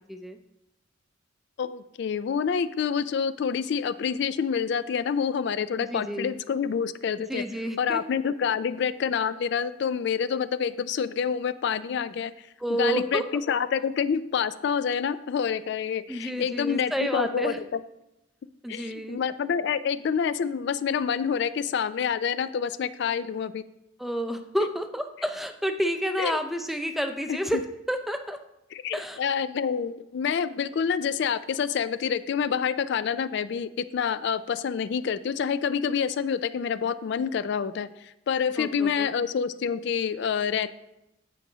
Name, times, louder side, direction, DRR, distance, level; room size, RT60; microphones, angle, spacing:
voice 1, 1.6-7.4 7.8-12.3 12.7-13.2 13.5-17.8 18.7-23.6 26.2-26.4 28.7-40.7, left 7 dB, 60° left, 14 dB, 0.3 m, -27 dB
voice 2, 5.8-6.4 7.3-8.0 12.6-13.2 16.1-17.6 18.6-19.2 24.0-28.4 28.9-29.2 38.6-39.1, equal, ahead, 7 dB, 0.5 m, -30 dB
14.5 x 4.8 x 3.9 m, 0.89 s
head